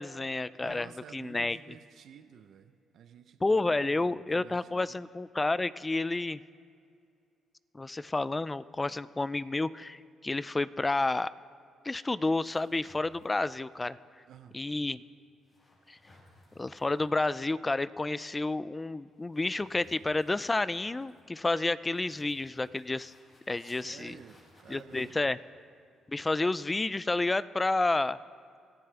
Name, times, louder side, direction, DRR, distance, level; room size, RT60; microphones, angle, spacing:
voice 1, 0.0-1.6 3.4-6.4 7.7-11.3 11.8-14.0 14.5-15.0 15.9-16.0 16.6-23.1 23.5-24.2 24.7-25.4 26.1-28.2, left 2 dB, 20° left, 17 dB, 0.4 m, -30 dB
voice 2, 0.6-5.0 14.3-14.6 23.6-25.3, right 8 dB, 70° right, 9 dB, 0.7 m, -52 dB
sound 1, 12.4-26.8, left 2 dB, 40° left, 5.2 m, -62 dB
24.5 x 14.5 x 3.4 m, 2.3 s
cardioid pair, 90°, 0 cm